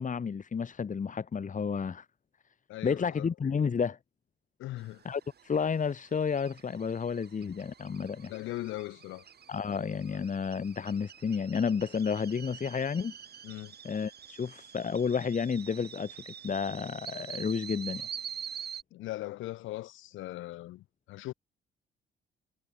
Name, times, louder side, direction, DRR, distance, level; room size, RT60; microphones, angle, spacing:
voice 1, 0.0-2.1 2.8-4.0 5.0-8.3 9.5-13.1 13.8-18.1, left 6 dB, 40° left, 2.0 m, -31 dB
voice 2, 2.7-3.3 4.6-5.0 8.3-9.3 13.4-13.8 18.9-21.3, left 16 dB, 80° left, 5.4 m, -39 dB
sound 1, 4.8-18.8, right 8 dB, 55° right, 5.6 m, -46 dB
supercardioid pair, 60°, 20 cm